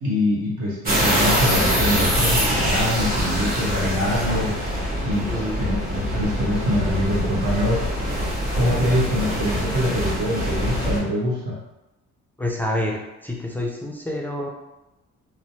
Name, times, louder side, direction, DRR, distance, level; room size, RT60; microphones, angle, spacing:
voice 1, 0.0-4.6 5.0-7.9 8.5-11.6, left 1 dB, 85° right, -5 dB, 1.1 m, -24 dB
sound 1, 0.9-11.0, equal, 30° right, 1.1 m, -24 dB
voice 2, 5.3-5.6 12.4-14.5, left 1 dB, 5° left, -2 dB, 0.4 m, -28 dB
3.1 x 2.1 x 2.8 m, 0.96 s
cardioid pair, 90°, 30 cm